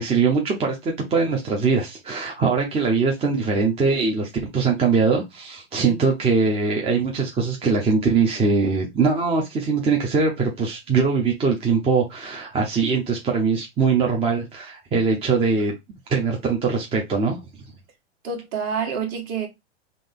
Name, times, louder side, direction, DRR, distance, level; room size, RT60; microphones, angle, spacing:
voice 1, 0.0-15.8 16.1-17.4, right 4 dB, 15° right, 0.7 m, -22 dB
voice 2, 18.2-19.5, right 6 dB, 40° right, 1.5 m, -28 dB
3.8 x 2.9 x 3.6 m
hypercardioid pair, 120°, 36 cm